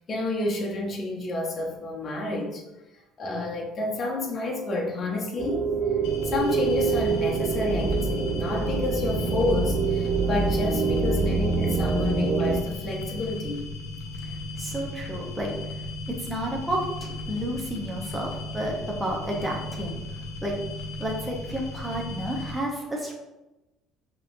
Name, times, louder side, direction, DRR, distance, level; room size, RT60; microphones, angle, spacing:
voice 1, 0.1-2.6 3.2-5.7 6.2-13.7 14.6-14.7, left 2 dB, 35° left, -2 dB, 1.0 m, -29 dB
sound 1, 5.4-12.6, right 4 dB, 45° right, 0.4 m, -25 dB
sound 2, 6.0-22.6, left 2 dB, 75° left, 0.8 m, -36 dB
voice 2, 14.2-20.0 20.4-20.6 21.0-23.1, right 1 dB, 10° right, -2 dB, 0.9 m, -31 dB
5.5 x 3.1 x 2.6 m, 0.99 s
cardioid pair, 110°, 0 cm